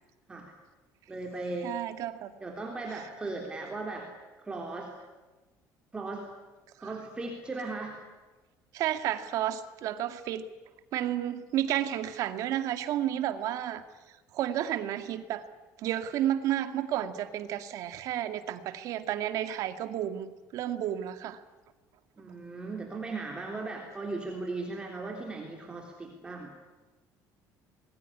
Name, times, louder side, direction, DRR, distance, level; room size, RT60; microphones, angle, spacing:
voice 1, 1.1-1.7 2.4-4.1 4.4-4.9 5.9-6.3 6.8-8.0 22.2-26.5, right 3 dB, 15° right, 1 dB, 3.5 m, -37 dB
voice 2, 1.6-2.3 2.9-3.1 8.7-10.5 10.9-13.8 14.3-15.5 15.8-21.4, right 11 dB, 55° right, 9 dB, 2.2 m, -31 dB
27.0 x 21.5 x 10.0 m, 1.2 s
cardioid pair, 170°, 7 cm